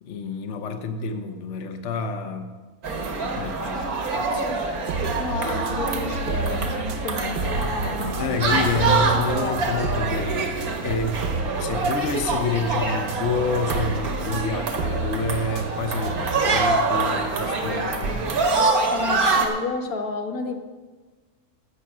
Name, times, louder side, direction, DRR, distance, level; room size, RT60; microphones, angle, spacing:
voice 1, 0.0-2.6 3.3-3.8 4.1-4.5 8.2-11.2 11.6-18.1, left 4 dB, 60° left, 7 dB, 1.1 m, -28 dB
sound 1, 2.8-19.5, right 3 dB, 90° right, 1.9 m, -25 dB
sound 2, 4.7-16.7, right 3 dB, 55° right, 0.8 m, -32 dB
voice 2, 5.2-8.7 9.3-9.8 18.9-20.6, left 3 dB, 80° left, 4 dB, 1.6 m, -32 dB
13.0 x 7.4 x 6.0 m, 1.3 s
omnidirectional pair, 1.5 m